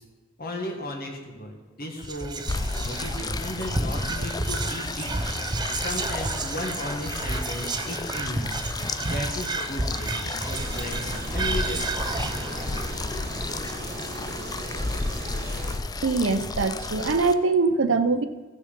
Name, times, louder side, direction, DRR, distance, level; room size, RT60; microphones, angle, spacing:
voice 1, 0.4-5.2 5.7-8.5 9.0-12.0, left 1 dB, 50° left, 2 dB, 1.8 m, -35 dB
Whispering, 2.0-14.5, right 2 dB, 20° right, 0.7 m, -31 dB
sound 1, 2.5-17.3, left 3 dB, 20° left, 0.4 m, -33 dB
sound 2, 10.5-15.8, right 1 dB, 50° right, 1.4 m, -36 dB
voice 2, 16.0-18.3, right 4 dB, 70° right, 10 dB, 0.6 m, -23 dB
14.5 x 6.5 x 5.2 m, 1.4 s
head